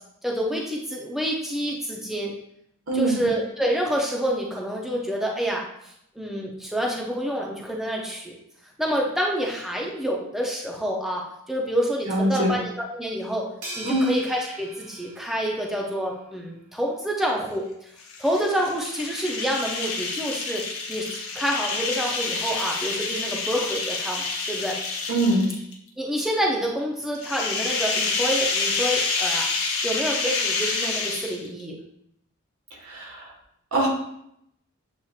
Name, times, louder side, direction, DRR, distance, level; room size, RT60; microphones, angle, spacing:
voice 1, 0.2-2.3 2.9-8.4 8.8-13.5 13.8-17.6 18.2-24.8 26.0-29.5 29.8-31.8, equal, ahead, -2 dB, 0.5 m, -28 dB
voice 2, 2.9-3.2 12.1-12.5 13.8-14.1 25.1-25.5 32.8-33.3 33.7-33.9, right 1 dB, 85° right, -1 dB, 1.3 m, -23 dB
sound 1, 13.6-16.1, right 2 dB, 70° right, 1.2 m, -40 dB
sound 2, 18.0-25.7 27.1-31.6, left 4 dB, 80° left, 0.9 m, -28 dB
7.4 x 2.8 x 2.3 m, 0.75 s
head